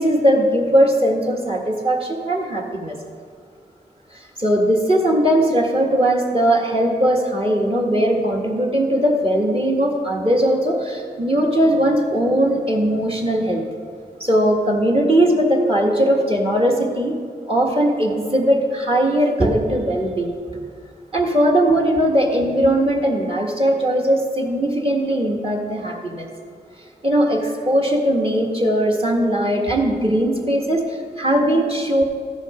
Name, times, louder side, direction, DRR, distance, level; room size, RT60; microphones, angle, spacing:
voice 1, 0.0-3.0 4.1-13.6 14.2-17.2 17.5-20.3 21.1-26.3 27.0-32.0, right 1 dB, 30° right, 1 dB, 1.8 m, -19 dB
14.0 x 5.2 x 5.1 m, 2.1 s
cardioid pair, 40°, 18 cm